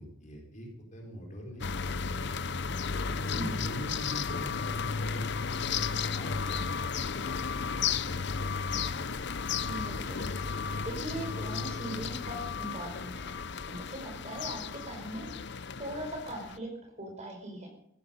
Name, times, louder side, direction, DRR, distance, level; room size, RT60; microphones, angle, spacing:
voice 1, 0.0-2.3 3.1-6.7, equal, 35° left, 0 dB, 4.3 m, -43 dB
sound 1, 1.6-16.6, left 5 dB, 55° left, 0.7 m, -34 dB
voice 2, 9.6-10.3 10.8-13.3 13.7-15.3 15.8-16.7 17.0-17.7, right 1 dB, 35° right, 2 dB, 4.7 m, -40 dB
15.5 x 15.0 x 5.4 m, 0.77 s
head